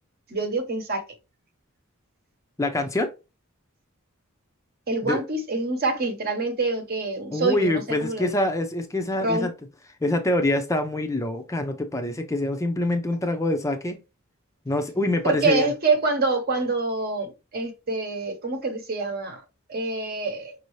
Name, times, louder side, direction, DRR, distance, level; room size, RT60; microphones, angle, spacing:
voice 1, 0.3-1.0 4.9-8.4 9.2-9.5 15.2-19.4 19.7-20.5, right 3 dB, 45° right, 1.0 m, -26 dB
voice 2, 2.6-3.1 5.0-5.2 7.3-9.5 10.0-14.0 14.7-15.7, left 1 dB, 15° left, 0.5 m, -25 dB
5.4 x 2.7 x 3.1 m
head